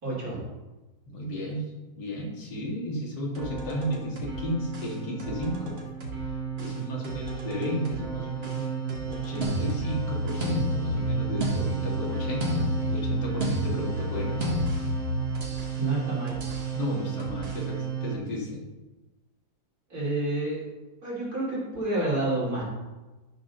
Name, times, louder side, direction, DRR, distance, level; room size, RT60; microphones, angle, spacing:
voice 1, 0.0-0.4 15.8-16.4 19.9-20.7 21.0-22.6, right 2 dB, 55° right, -7 dB, 3.6 m, -29 dB
voice 2, 1.1-1.6 1.9-5.8 6.6-14.5 16.7-18.6, equal, 70° left, -2 dB, 2.6 m, -33 dB
sound 1, 3.3-18.1, right 6 dB, 75° right, 2.4 m, -33 dB
sound 2, 9.4-15.7 16.4-16.7, left 1 dB, 35° right, 2.1 m, -30 dB
12.0 x 6.2 x 3.9 m, 1.1 s
omnidirectional pair, 1.9 m